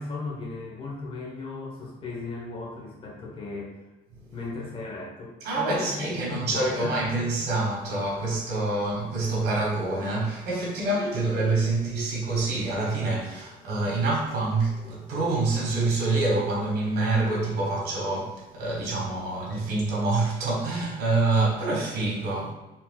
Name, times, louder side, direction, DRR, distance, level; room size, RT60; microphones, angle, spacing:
voice 1, 0.0-3.8 4.3-7.0, left 3 dB, 30° left, 1.0 m, -36 dB
voice 2, 5.4-22.5, right 2 dB, 70° right, 1.3 m, -26 dB
4.4 x 3.7 x 2.3 m
cardioid pair, 110°, 17 cm